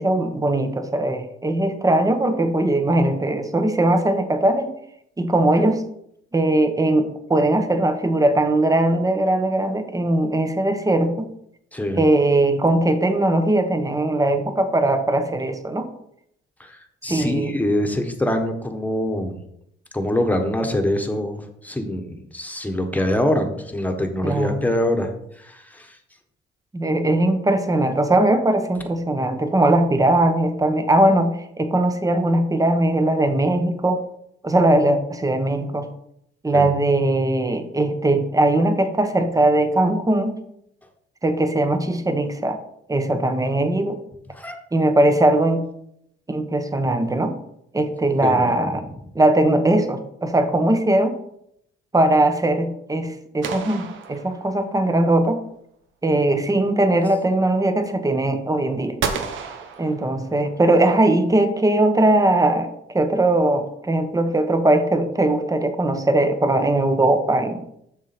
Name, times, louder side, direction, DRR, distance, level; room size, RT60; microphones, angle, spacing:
voice 1, 0.0-4.7 5.2-5.8 6.3-11.2 11.9-15.9 17.1-17.6 24.2-24.6 26.7-34.0 34.4-35.9 36.4-40.4 41.2-42.6 42.9-44.0 44.7-45.7 46.3-47.4 47.7-48.8 49.1-51.2 51.9-55.4 56.0-59.0 59.8-67.6, right 1 dB, 15° right, 8 dB, 1.0 m, -20 dB
voice 2, 11.7-12.0 16.6-19.4 19.9-25.1 25.4-26.0 36.5-36.7 44.3-44.6 48.2-48.8, left 1 dB, 10° left, 4 dB, 1.4 m, -24 dB
sound 1, 53.4-54.9 59.0-60.6, right 6 dB, 75° right, 1.0 m, -31 dB
7.4 x 6.3 x 4.4 m, 0.75 s
cardioid pair, 90°, 20 cm